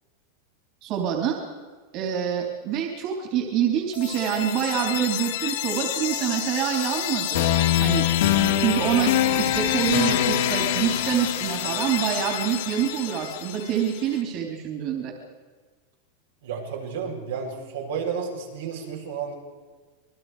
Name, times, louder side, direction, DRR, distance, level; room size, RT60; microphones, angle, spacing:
voice 1, 0.8-1.4 1.9-7.5 7.8-8.1 8.4-15.1, right 9 dB, 45° right, 2 dB, 3.4 m, -26 dB
sound 1, 3.9-13.9, left 11 dB, 75° left, 2.5 m, -25 dB
voice 2, 16.4-19.3, right 6 dB, 90° right, -2 dB, 7.3 m, -32 dB
27.5 x 20.5 x 5.0 m, 1.4 s
supercardioid pair, 140°, 0 cm